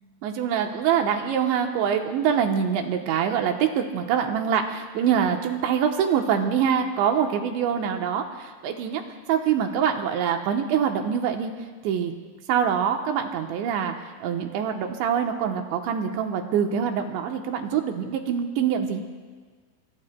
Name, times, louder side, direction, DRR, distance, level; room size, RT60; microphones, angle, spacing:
voice 1, 0.2-9.0 9.3-11.5 11.8-12.1 12.5-13.9 14.2-19.0, right 8 dB, 75° right, 4 dB, 3.1 m, -24 dB
25.5 x 24.5 x 2.3 m, 1.5 s
omnidirectional pair, 5.6 m